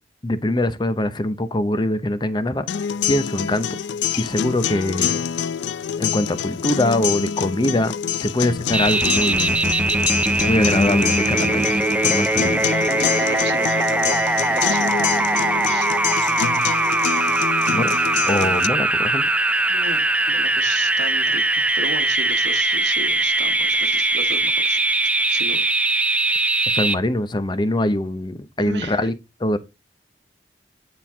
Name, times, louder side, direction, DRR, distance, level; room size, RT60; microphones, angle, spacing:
voice 1, 0.2-3.8 4.2-5.3 6.0-9.6 10.4-12.8 17.7-17.9 18.3-19.3 26.7-29.1 29.4-29.6, left 1 dB, 25° left, 0.7 m, -23 dB
sound 1, 2.7-18.7, left 8 dB, 75° left, 0.4 m, -26 dB
sound 2, 8.7-26.9, right 2 dB, 10° right, 0.4 m, -21 dB
voice 2, 12.9-15.9 19.7-24.8 25.3-25.7 28.6-29.0, right 3 dB, 75° right, 1.3 m, -34 dB
9.6 x 4.4 x 3.6 m
head